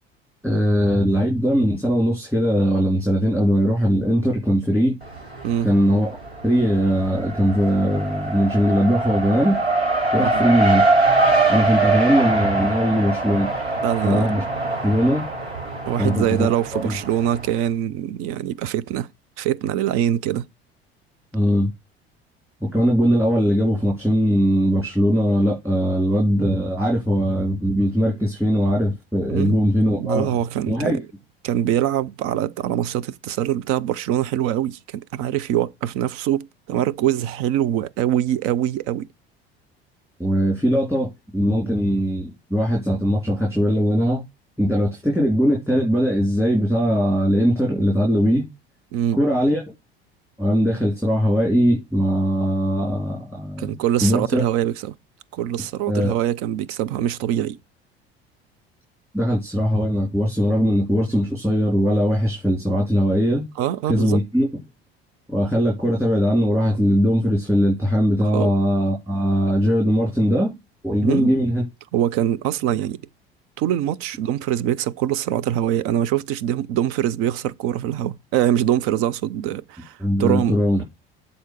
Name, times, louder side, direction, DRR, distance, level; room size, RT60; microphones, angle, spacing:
voice 1, 0.4-5.0 5.6-6.1 6.4-9.6 10.1-10.9 11.5-13.5 14.0-14.4 14.8-15.3 16.0-17.0 21.3-21.7 22.6-30.4 30.7-31.0 40.2-44.2 44.6-48.5 49.1-49.7 50.4-53.7 54.0-54.4 55.9-56.2 59.1-63.5 63.9-64.5 65.3-70.6 70.8-71.6 80.0-80.8, equal, 10° right, 3.5 m, -20 dB
Race car auto racing, 5.0-5.8 6.1-17.4, right 2 dB, 85° right, 1.7 m, -23 dB
voice 2, 13.8-14.4 15.9-19.1 19.4-20.5 29.3-29.6 30.0-31.0 31.4-39.1 48.9-49.2 53.6-54.9 55.3-57.6 63.6-64.2 68.3-68.5 71.0-71.3 71.9-73.0 73.6-80.6, right 11 dB, 45° right, 0.6 m, -23 dB
7.9 x 3.9 x 6.7 m
figure-of-eight pair, 65°, 31 cm